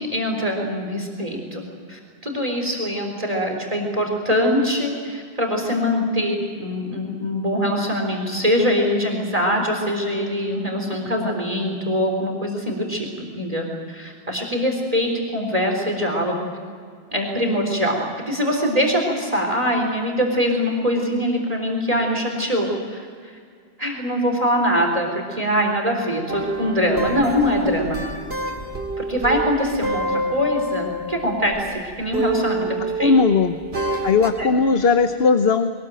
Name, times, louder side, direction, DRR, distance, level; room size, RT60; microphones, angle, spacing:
voice 1, 0.0-1.6 1.9-16.5 17.1-23.4 23.8-28.1 29.0-33.2 34.4-34.5, equal, 35° right, 1 dB, 4.0 m, -23 dB
sound 1, 26.3-31.8 32.1-34.4, right 1 dB, 85° right, 2.7 m, -28 dB
voice 2, 33.0-33.6 34.0-35.7, left 4 dB, 70° left, 8 dB, 1.2 m, -17 dB
23.0 x 20.5 x 9.0 m, 2.1 s
omnidirectional pair, 1.0 m